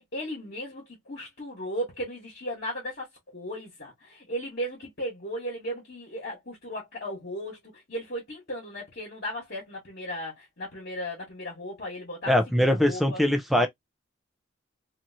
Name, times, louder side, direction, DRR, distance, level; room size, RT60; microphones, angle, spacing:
voice 1, 0.0-13.2, equal, 50° left, 1.4 m, -36 dB
voice 2, 12.3-13.7, left 1 dB, ahead, 0.5 m, -22 dB
3.0 x 2.7 x 2.6 m
head